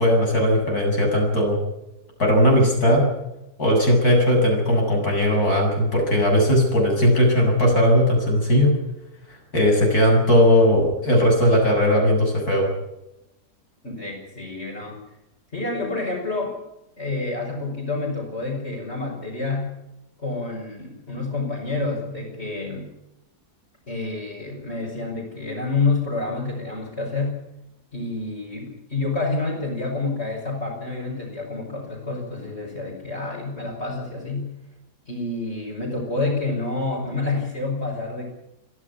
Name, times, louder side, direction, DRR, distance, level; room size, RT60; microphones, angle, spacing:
voice 1, 0.0-1.6 2.2-3.0 3.6-8.7 9.5-12.7, equal, 70° left, 1 dB, 8.3 m, -18 dB
voice 2, 13.8-15.0 15.5-16.6 17.0-19.7 20.2-22.9 23.9-27.3 27.9-34.5 35.1-38.3, left 3 dB, 40° left, -4 dB, 5.8 m, -28 dB
23.5 x 15.0 x 9.7 m, 0.89 s
omnidirectional pair, 1.7 m